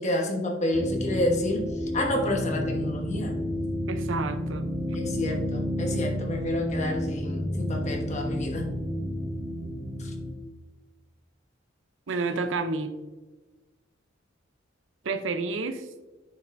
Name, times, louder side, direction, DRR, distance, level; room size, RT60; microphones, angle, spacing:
voice 1, 0.0-3.4 4.9-8.7 10.0-10.1, left 1 dB, 35° left, 1 dB, 1.2 m, -29 dB
sound 1, 0.7-10.3, left 1 dB, 35° right, 1.4 m, -31 dB
voice 2, 3.9-4.7 12.1-12.9 15.0-15.9, right 3 dB, 75° right, 9 dB, 0.6 m, -29 dB
9.4 x 5.4 x 2.6 m, 1.2 s
head